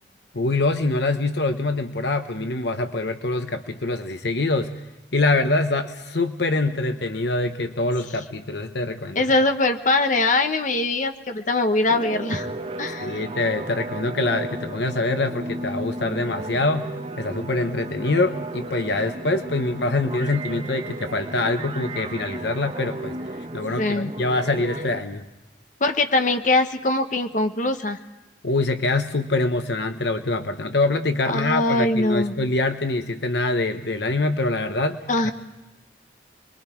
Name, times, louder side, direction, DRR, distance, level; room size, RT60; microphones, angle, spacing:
voice 1, 0.3-4.7 5.1-9.3 13.0-16.9 17.2-25.2 28.4-35.0, left 2 dB, 70° left, 8 dB, 1.0 m, -24 dB
voice 2, 9.1-12.5 12.8-13.2 23.8-24.1 25.8-28.0 31.3-32.3 35.1-35.3, left 2 dB, 45° left, 6 dB, 1.3 m, -22 dB
sound 1, 11.9-25.0, right 1 dB, 35° right, 0.9 m, -34 dB
28.0 x 22.0 x 4.6 m, 1.0 s
head